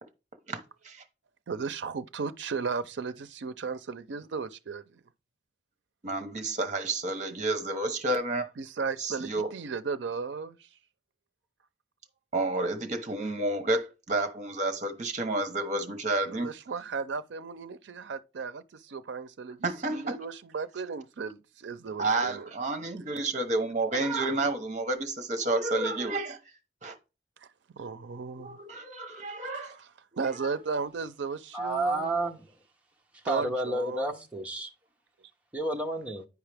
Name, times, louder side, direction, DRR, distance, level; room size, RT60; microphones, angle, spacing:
voice 1, 1.5-5.0 8.6-10.7 16.3-22.5 27.8-28.6 29.5-29.9 30.2-32.1 33.2-34.1, right 5 dB, 75° right, 0.5 m, -35 dB
voice 2, 6.0-8.5 9.0-9.5 12.3-16.5 19.6-20.2 22.0-26.4 26.8-26.9 28.4-29.8 30.4-30.5, right 2 dB, 40° right, 1.0 m, -30 dB
voice 3, 31.5-32.5 33.3-34.7 35.5-36.3, right 2 dB, 10° right, 0.9 m, -30 dB
9.4 x 4.8 x 3.4 m
head